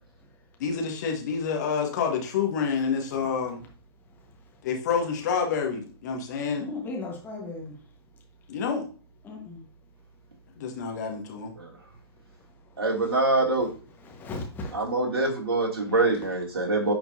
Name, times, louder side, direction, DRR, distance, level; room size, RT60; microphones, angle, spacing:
voice 1, 0.6-3.6 4.6-6.6 8.5-8.9 10.5-11.5, left 6 dB, 40° left, 1.6 m, -28 dB
voice 2, 6.6-7.7 9.2-9.6 14.1-14.7, left 2 dB, 15° left, 1.4 m, -36 dB
voice 3, 12.8-13.7 14.7-16.9, right 2 dB, 65° right, 2.7 m, -24 dB
9.6 x 4.5 x 2.7 m
figure-of-eight pair, 120°, 14 cm